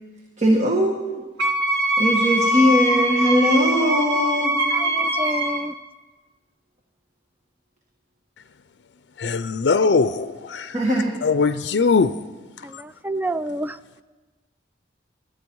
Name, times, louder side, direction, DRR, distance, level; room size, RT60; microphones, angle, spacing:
voice 1, 0.4-1.2 2.0-4.6 5.1-5.3 10.7-11.2, equal, 40° right, 1.4 m, -20 dB
Wind instrument woodwind instrument, 1.4-5.7, equal, 75° right, 2.0 m, -22 dB
voice 2, 4.7-5.7 12.7-14.0, right 1 dB, 10° right, 0.3 m, -29 dB
voice 3, 9.2-12.2 12.7-12.8, left 4 dB, 75° left, 0.5 m, -21 dB
20.5 x 12.5 x 4.6 m
head